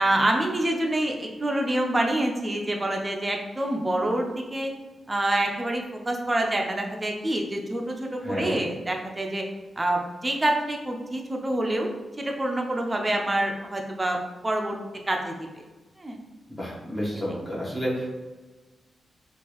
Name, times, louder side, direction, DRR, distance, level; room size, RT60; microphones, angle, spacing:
voice 1, 0.0-4.7 5.1-9.4 9.8-11.9 12.2-14.2 14.4-14.8 15.1-15.3 16.0-16.2, right 1 dB, 20° right, 1 dB, 0.5 m, -26 dB
voice 2, 8.2-8.6 16.5-18.2, equal, 15° left, -7 dB, 0.9 m, -30 dB
3.7 x 2.5 x 2.9 m, 1.2 s
wide cardioid pair, 130°, 0 cm